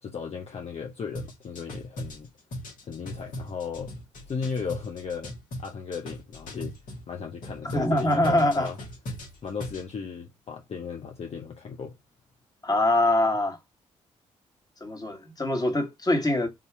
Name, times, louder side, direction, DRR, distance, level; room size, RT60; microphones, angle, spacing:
voice 1, 0.0-2.3 2.8-3.9 4.3-6.8 7.1-8.8 9.4-12.0, left 6 dB, 45° left, 0.7 m, -36 dB
sound 1, 1.1-7.0 7.4-9.9, left 1 dB, 70° left, 1.5 m, -39 dB
voice 2, 7.7-8.7 12.6-13.6 14.8-16.5, left 1 dB, 25° left, 1.4 m, -23 dB
3.7 x 2.7 x 4.6 m
hypercardioid pair, 45°, 14 cm